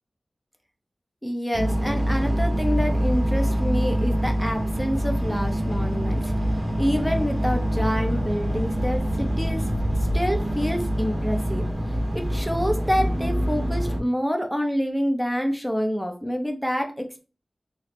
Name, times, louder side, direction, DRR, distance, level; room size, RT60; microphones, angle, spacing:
voice 1, 1.2-6.3 6.8-9.7 10.1-11.7 12.1-17.2, equal, ahead, 3 dB, 0.6 m, -27 dB
sound 1, 1.5-14.0, equal, 30° right, 0.9 m, -25 dB
3.0 x 2.0 x 4.1 m, 0.34 s
wide cardioid pair, 85°, 0 cm